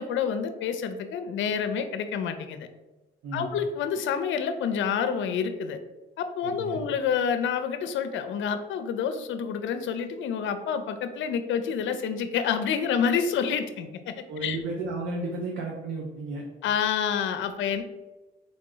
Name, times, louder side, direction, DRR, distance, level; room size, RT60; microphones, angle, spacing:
voice 1, 0.0-2.7 3.3-5.8 6.2-14.1 14.4-14.6 16.6-17.8, left 7 dB, 75° left, 9 dB, 0.5 m, -28 dB
voice 2, 6.4-6.8 14.3-16.4, right 3 dB, 70° right, -2 dB, 0.9 m, -33 dB
3.8 x 3.6 x 3.7 m, 1.1 s
cardioid pair, 90°, 20 cm